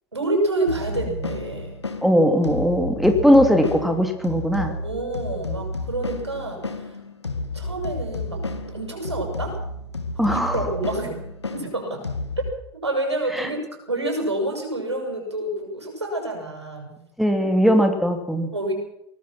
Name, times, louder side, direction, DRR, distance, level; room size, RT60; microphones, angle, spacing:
voice 1, 0.1-1.7 4.6-6.9 7.5-9.6 10.3-11.3 11.5-12.0 12.7-13.6 13.9-17.0 18.5-18.7, right 2 dB, 80° right, 2 dB, 7.5 m, -28 dB
sound 1, 0.7-12.5, left 3 dB, 80° left, 1.7 m, -32 dB
voice 2, 2.0-4.8 10.2-10.6 13.3-13.5 17.2-18.5, equal, ahead, 6 dB, 2.9 m, -19 dB
24.0 x 19.0 x 6.0 m, 0.76 s
figure-of-eight pair, 80°, 14 cm